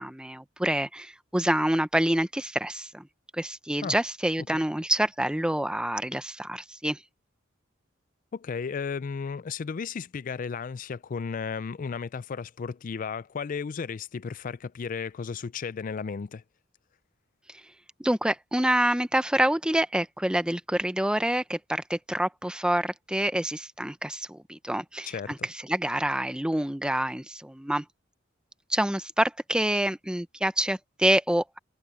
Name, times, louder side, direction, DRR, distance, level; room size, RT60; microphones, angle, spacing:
voice 1, 0.0-3.1 3.3-7.0 18.0-27.9 28.7-31.6, right 1 dB, 5° right, 0.7 m, -27 dB
voice 2, 8.3-16.4 25.1-25.3, left 5 dB, 45° left, 0.4 m, -34 dB
head